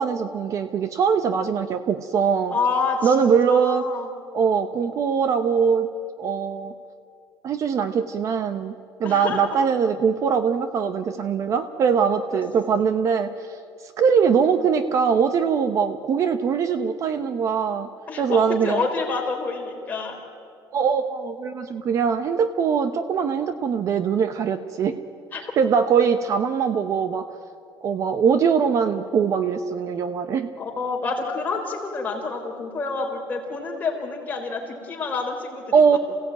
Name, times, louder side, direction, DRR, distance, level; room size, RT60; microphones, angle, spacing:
voice 1, 0.0-2.6 3.0-3.9 4.3-5.9 6.2-6.7 7.4-8.7 9.0-13.3 14.0-17.9 18.2-18.8 20.7-25.0 25.6-27.3 27.8-30.5 35.7-36.0, right 6 dB, 40° right, 10 dB, 0.8 m, -22 dB
voice 2, 2.5-4.1 9.0-9.5 12.3-12.4 18.1-20.2 25.3-25.4 30.6-36.0, left 4 dB, 20° left, 0 dB, 3.7 m, -28 dB
27.5 x 16.5 x 9.1 m, 2.3 s
cardioid pair, 180°, 8 cm